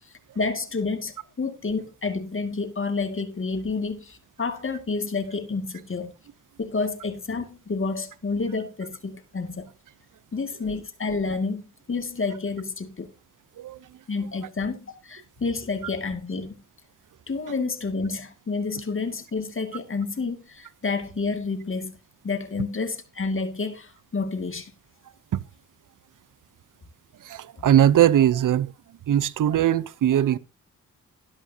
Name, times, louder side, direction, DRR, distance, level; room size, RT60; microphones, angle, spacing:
voice 1, 0.4-6.1 6.6-9.7 10.3-11.6 11.9-13.1 14.1-16.5 17.3-21.9 22.2-24.7, left 4 dB, 40° left, 2.2 m, -29 dB
voice 2, 27.2-28.7 29.1-30.4, right 11 dB, 70° right, 0.8 m, -20 dB
12.5 x 11.5 x 2.8 m
cardioid pair, 50°, 32 cm